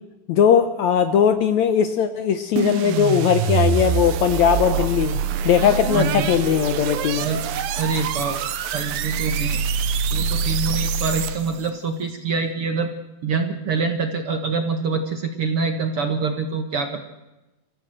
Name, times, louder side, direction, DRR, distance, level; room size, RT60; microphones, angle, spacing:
voice 1, 0.3-5.2 5.5-7.3, left 8 dB, 70° left, 10 dB, 1.9 m, -19 dB
sound 1, 2.6-11.7, right 6 dB, 80° right, 2.9 m, -25 dB
voice 2, 5.9-6.3 7.2-7.4 7.7-9.6 10.1-12.9 13.2-17.0, right 4 dB, 50° right, 6 dB, 1.8 m, -25 dB
28.0 x 15.0 x 7.8 m, 1.0 s
omnidirectional pair, 4.1 m